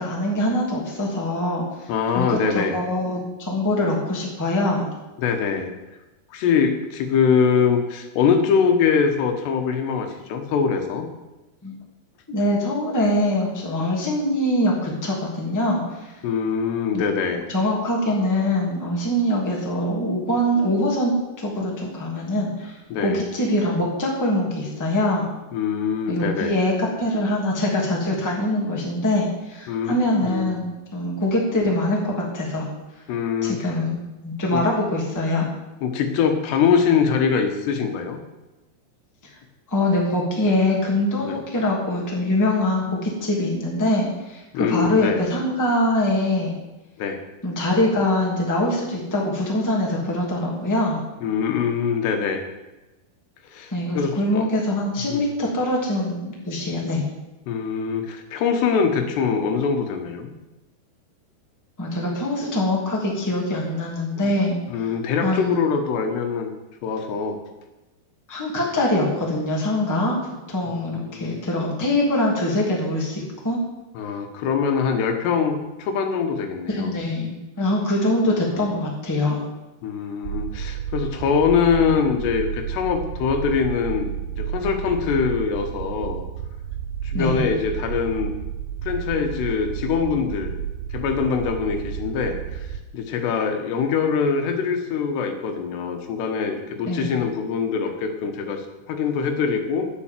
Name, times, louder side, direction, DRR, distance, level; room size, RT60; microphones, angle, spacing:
voice 1, 0.0-1.9 2.1-4.9 11.6-11.8 12.3-16.2 16.9-17.0 17.5-25.3 26.1-32.7 33.4-34.0 34.2-35.5 39.2-39.3 39.7-46.5 47.4-51.0 53.7-57.0 61.8-64.6 65.2-65.6 68.3-70.2 70.5-73.6 76.7-79.4 87.1-87.5 96.8-97.1, left 1 dB, 5° left, -3 dB, 1.7 m, -23 dB
voice 2, 1.9-2.8 5.2-5.7 6.3-11.1 16.2-17.4 22.9-23.2 25.5-26.6 29.7-30.0 30.3-30.6 33.1-33.8 34.5-34.6 35.8-38.2 41.2-41.4 44.5-45.2 47.0-47.2 51.2-52.5 53.4-54.5 55.1-55.2 57.5-60.3 64.2-64.3 64.7-66.5 66.8-67.4 70.7-71.4 73.9-77.0 78.5-78.6 79.8-84.1 84.3-86.2 87.0-88.3 88.8-90.6 90.9-99.9, left 6 dB, 80° left, 5 dB, 3.4 m, -23 dB
sound 1, 80.2-92.8, right 9 dB, 85° right, 2.7 m, -31 dB
9.7 x 8.9 x 7.4 m, 1.0 s
omnidirectional pair, 4.8 m